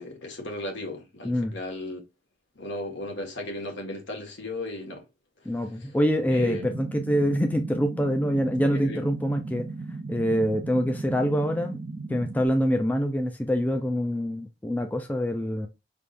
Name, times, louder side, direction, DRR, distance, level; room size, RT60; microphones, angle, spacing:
voice 1, 0.0-2.0 2.5-5.0 5.8-5.9 6.3-6.6 8.7-9.0, left 2 dB, 80° left, 1.6 m, -35 dB
voice 2, 1.2-1.6 5.5-9.7 10.1-11.8 12.1-15.7, equal, 10° left, 0.4 m, -25 dB
sound 1, 6.3-12.5, right 3 dB, 40° right, 0.6 m, -36 dB
5.4 x 3.5 x 2.5 m
head